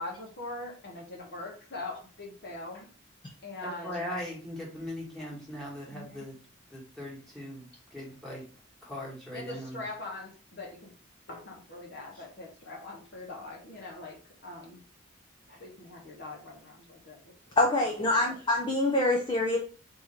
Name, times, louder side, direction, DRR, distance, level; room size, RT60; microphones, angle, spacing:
voice 1, 0.0-2.8 3.4-4.0 5.9-6.2 9.3-10.9 11.3-14.8 15.5-17.2 17.8-18.3, left 2 dB, 55° left, 0 dB, 1.2 m, -42 dB
voice 2, 3.6-6.4 6.7-8.5 8.8-9.8, left 1 dB, ahead, -5 dB, 1.5 m, -39 dB
voice 3, 17.6-19.6, left 2 dB, 25° left, 0 dB, 0.5 m, -25 dB
3.7 x 2.9 x 4.3 m, 0.38 s
head